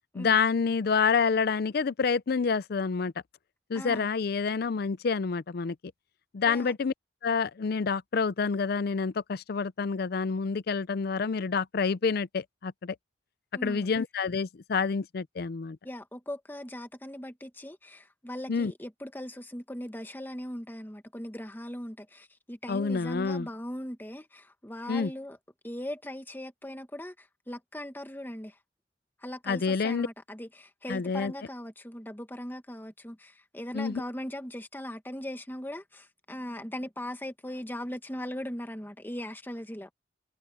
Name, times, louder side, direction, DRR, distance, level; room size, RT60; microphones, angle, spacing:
voice 1, 0.1-3.1 3.7-5.8 6.3-6.9 7.2-13.0 13.6-15.8 18.5-18.7 22.7-23.5 24.9-25.1 29.5-30.1 30.9-31.3 33.7-34.0, left 5 dB, 55° left, 0.4 m, -28 dB
voice 2, 3.7-4.1 6.4-6.7 13.5-13.9 15.8-25.4 25.6-28.6 29.2-39.9, left 1 dB, 10° left, 1.3 m, -39 dB
head